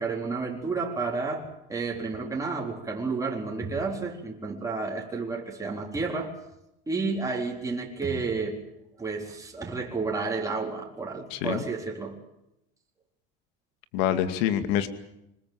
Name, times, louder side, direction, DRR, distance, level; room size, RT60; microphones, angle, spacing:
voice 1, 0.0-6.3 6.9-8.6 9.0-12.2, right 4 dB, 10° right, -1 dB, 4.1 m, -31 dB
voice 2, 11.3-11.7 13.9-14.9, left 10 dB, 85° left, 10 dB, 2.4 m, -26 dB
25.0 x 21.0 x 7.7 m, 0.83 s
cardioid pair, 140°, 29 cm